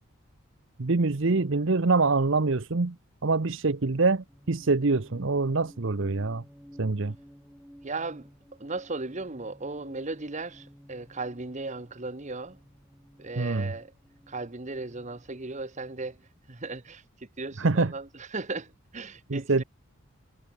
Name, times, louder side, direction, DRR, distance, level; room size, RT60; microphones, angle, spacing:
voice 1, 0.8-3.0 3.2-6.4 6.8-7.1 13.4-13.7 17.6-17.9 19.3-19.6, right 3 dB, 55° right, 0.8 m, -25 dB
sound 1, 4.3-16.3, equal, ahead, 6.5 m, -54 dB
voice 2, 7.8-8.3 8.6-12.6 13.2-13.9 14.3-16.2 16.5-17.0 17.4-19.6, right 3 dB, 30° right, 1.1 m, -36 dB
head